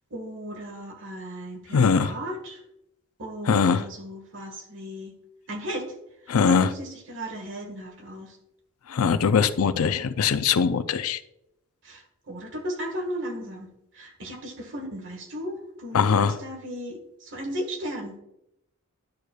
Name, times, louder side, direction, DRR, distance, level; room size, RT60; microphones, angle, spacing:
voice 1, 0.1-2.6 3.2-5.1 5.5-5.9 6.2-8.4 11.8-18.2, equal, 60° right, 3 dB, 1.6 m, -36 dB
voice 2, 1.7-2.1 3.5-3.8 6.3-6.7 8.9-11.2 15.9-16.4, left 6 dB, 80° left, 12 dB, 0.5 m, -21 dB
10.5 x 6.5 x 2.3 m, 0.82 s
head